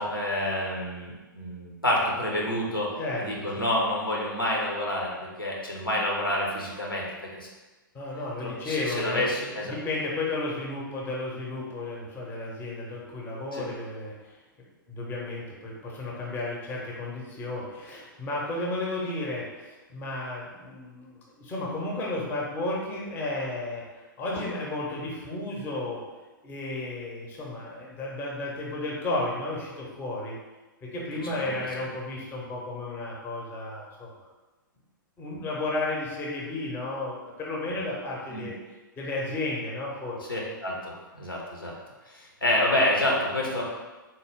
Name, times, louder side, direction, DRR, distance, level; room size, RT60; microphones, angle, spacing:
voice 1, 0.0-2.9 3.2-7.1 7.4-7.5 8.4-9.7 13.5-13.6 31.4-31.6 38.3-38.5 40.3-41.7 42.1-43.6, left 1 dB, 90° left, -3 dB, 0.9 m, -28 dB
voice 2, 7.9-14.1 14.9-23.8 24.2-26.0 26.4-30.4 30.8-34.1 35.2-38.5 39.0-40.2, left 2 dB, 15° left, -4 dB, 0.7 m, -33 dB
3.6 x 2.2 x 3.5 m, 1.2 s
figure-of-eight pair, 115°, 11 cm